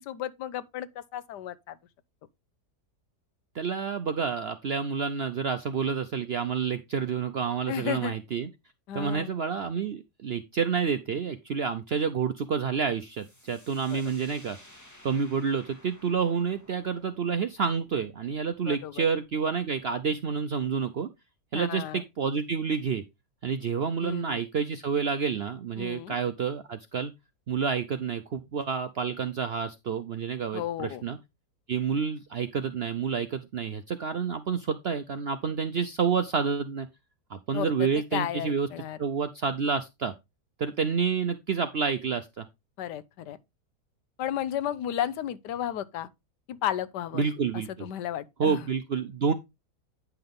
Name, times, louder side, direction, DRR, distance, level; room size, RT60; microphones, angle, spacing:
voice 1, 0.0-1.8 7.7-8.2 8.9-9.3 13.9-14.0 18.7-19.1 21.5-22.0 24.0-24.4 25.8-26.1 30.5-31.0 37.5-39.0 42.8-43.4 44.2-46.1 46.5-47.2 47.5-48.7, left 11 dB, 90° left, 1.4 m, -33 dB
voice 2, 3.5-8.5 8.9-14.6 15.0-21.1 21.5-23.0 23.4-27.1 27.5-31.2 31.7-36.9 37.3-38.7 39.0-40.1 40.6-42.5 47.1-47.9 48.4-49.3, right 6 dB, 65° right, 0.6 m, -29 dB
sound 1, 13.0-20.6, left 1 dB, 10° left, 1.6 m, -56 dB
9.6 x 5.8 x 3.6 m
omnidirectional pair, 1.8 m